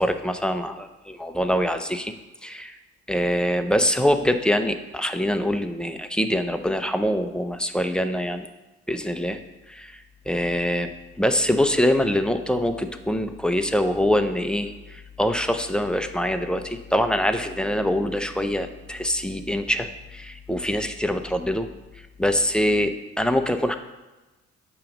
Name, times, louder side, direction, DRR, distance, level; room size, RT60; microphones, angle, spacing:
voice 1, 0.0-2.1 2.4-2.7 3.1-8.5 8.9-9.4 9.7-10.9 11.2-21.7 22.2-23.8, equal, 5° left, 7 dB, 0.5 m, -24 dB
8.6 x 3.0 x 6.0 m, 1.1 s
cardioid pair, 90°, 30 cm